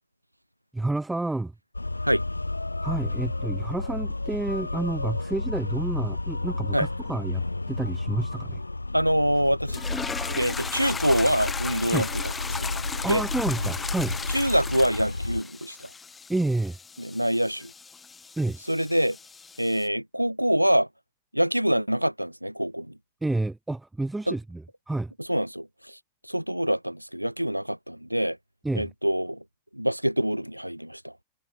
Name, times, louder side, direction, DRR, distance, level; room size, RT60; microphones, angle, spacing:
voice 1, 0.7-1.5 2.8-8.6 11.9-12.1 13.0-14.2 16.3-16.8 18.4-18.6 23.2-25.1 28.6-28.9, right 2 dB, 5° right, 7.8 m, -29 dB
sound 1, 1.7-15.4, left 2 dB, 85° left, 3.7 m, -32 dB
voice 2, 8.9-9.8 10.4-12.1 12.6-12.7 13.1-13.2 14.3-15.9 17.0-17.7 18.7-19.2 19.6-20.9 21.3-23.0 24.3-24.4 25.3-26.0 26.2-28.4 28.8-29.4 29.7-31.1, equal, 90° right, 3.9 m, -25 dB
sound 2, 9.7-19.9, left 5 dB, 15° left, 1.8 m, -37 dB
figure-of-eight pair, 90°, 0 cm